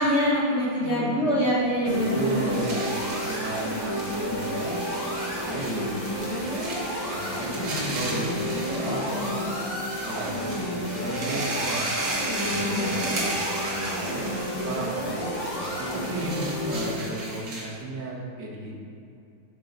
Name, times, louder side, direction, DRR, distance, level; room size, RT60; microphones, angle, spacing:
voice 1, 0.0-2.6 8.9-9.4 12.4-13.1, equal, 45° left, -6 dB, 1.0 m, -25 dB
voice 2, 0.8-1.3 1.8-2.9 3.3-6.6 7.1-9.5 10.0-11.9 12.4-14.3 14.6-18.7, right 2 dB, 75° right, -2 dB, 1.7 m, -35 dB
sound 1, 1.8-16.9, equal, 30° left, 0.7 m, -30 dB
sound 2, 2.0-17.8, right 2 dB, 50° right, 1.4 m, -36 dB
6.1 x 4.6 x 3.9 m, 2.5 s
omnidirectional pair, 1.9 m